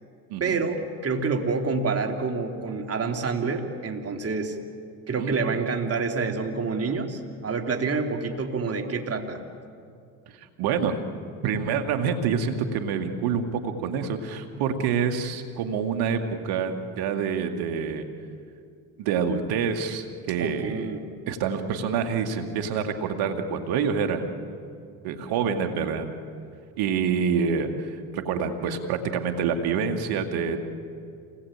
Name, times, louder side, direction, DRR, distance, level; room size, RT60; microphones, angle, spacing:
voice 1, 0.4-4.6 5.1-9.4 20.4-21.0, right 4 dB, 35° right, 4 dB, 3.1 m, -28 dB
voice 2, 10.6-11.0 11.4-18.0 19.0-20.9 21.3-24.3 25.0-26.1 26.8-30.6, right 6 dB, 70° right, 6 dB, 2.4 m, -27 dB
28.0 x 20.0 x 8.9 m, 2.4 s
supercardioid pair, 75°, 39 cm